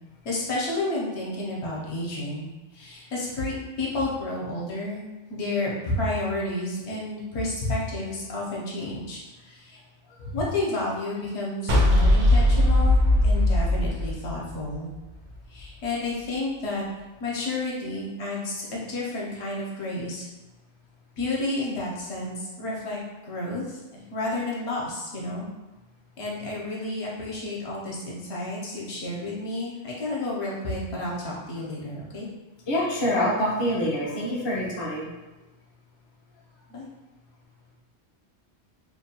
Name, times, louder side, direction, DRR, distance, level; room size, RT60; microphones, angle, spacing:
voice 1, 0.2-5.0 5.3-9.8 10.2-14.9 15.5-16.8 17.2-20.3 21.2-23.8 24.1-25.5 26.2-32.3 36.7-36.9, left 2 dB, 65° left, -4 dB, 0.9 m, -31 dB
sound 1, 11.7-14.9, left 1 dB, 70° right, 0.8 m, -19 dB
voice 2, 32.7-35.1, left 1 dB, 35° left, -6 dB, 0.4 m, -26 dB
2.8 x 2.2 x 2.8 m, 1.1 s
omnidirectional pair, 1.3 m